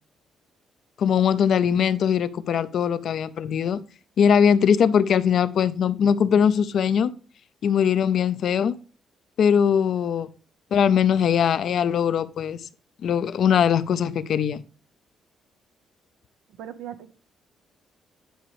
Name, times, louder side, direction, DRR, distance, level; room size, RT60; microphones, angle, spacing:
voice 1, 1.0-3.8 4.2-7.1 7.6-8.7 9.4-10.3 10.7-12.6 13.0-14.6, left 8 dB, 65° left, 0.5 m, -21 dB
voice 2, 16.6-17.2, right 10 dB, 90° right, 0.6 m, -38 dB
10.0 x 5.1 x 3.1 m
cardioid pair, 90°, 0 cm